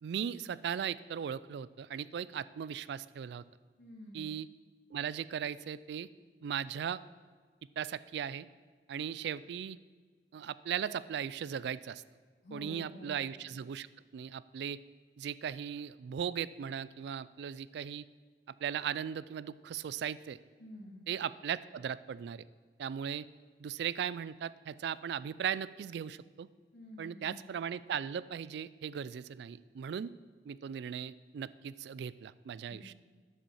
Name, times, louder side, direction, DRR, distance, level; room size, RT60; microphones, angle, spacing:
voice 1, 0.0-3.4 4.1-4.5 4.9-6.1 6.4-7.0 7.8-8.5 8.9-9.8 10.3-12.0 12.5-13.9 14.1-14.8 15.2-18.1 18.6-20.4 21.1-22.4 22.8-23.3 23.6-26.5 27.0-30.1 30.4-32.9, right 8 dB, 70° right, 18 dB, 0.3 m, -38 dB
voice 2, 3.8-4.3 12.4-13.2 20.6-21.0 26.7-27.4 32.7-32.9, left 1 dB, 90° left, -5 dB, 2.5 m, -49 dB
9.9 x 5.3 x 7.2 m, 1.5 s
head